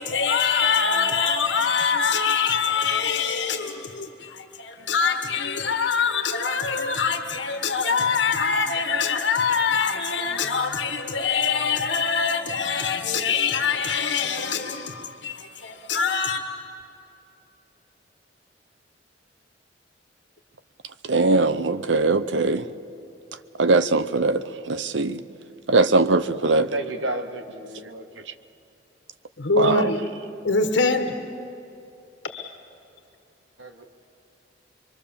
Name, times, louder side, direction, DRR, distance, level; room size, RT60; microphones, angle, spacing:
voice 1, 0.0-16.4 29.4-30.2 30.4-31.2 32.2-32.5, left 5 dB, 70° left, 1.4 m, -24 dB
voice 2, 21.0-22.7 23.6-25.2 25.7-26.7 29.6-29.9, right 3 dB, 70° right, 0.8 m, -21 dB
voice 3, 26.5-28.2 33.6-33.8, right 1 dB, 90° right, 1.6 m, -32 dB
24.0 x 24.0 x 7.1 m
head